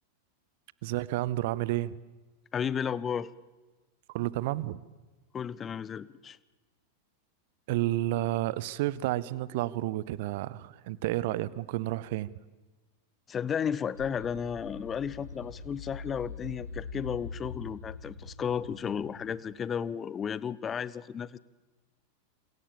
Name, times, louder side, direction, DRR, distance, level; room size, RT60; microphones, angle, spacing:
voice 1, 0.8-2.0 4.1-4.8 7.7-12.3, right 16 dB, 50° right, 21 dB, 0.9 m, -31 dB
voice 2, 2.5-3.3 5.3-6.4 13.3-21.4, left 7 dB, 25° left, 21 dB, 0.8 m, -33 dB
sound 1, 13.9-19.4, left 4 dB, 80° left, 4.8 m, -43 dB
27.5 x 27.5 x 7.2 m, 1.2 s
figure-of-eight pair, 90°, 0 cm